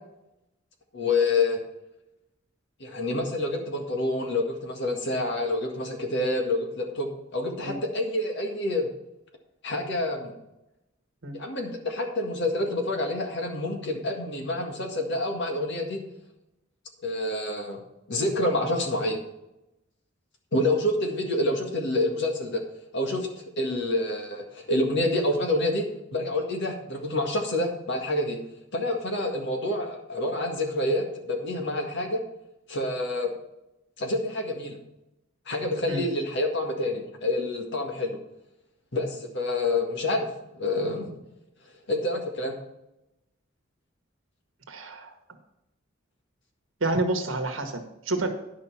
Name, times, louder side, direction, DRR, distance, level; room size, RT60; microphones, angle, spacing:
voice 1, 0.9-1.6 2.8-8.9 9.6-10.4 11.3-16.0 17.0-17.8 18.1-19.2 20.5-22.6 22.9-23.3 23.6-28.4 28.7-32.2 32.7-33.3 34.0-34.8 35.5-38.2 38.9-40.3 40.6-41.2 41.9-42.6, left 2 dB, 60° left, 2 dB, 1.8 m, -27 dB
voice 2, 44.7-45.1 46.8-48.3, right 2 dB, 75° right, 5 dB, 1.3 m, -29 dB
10.5 x 5.7 x 5.6 m, 0.91 s
head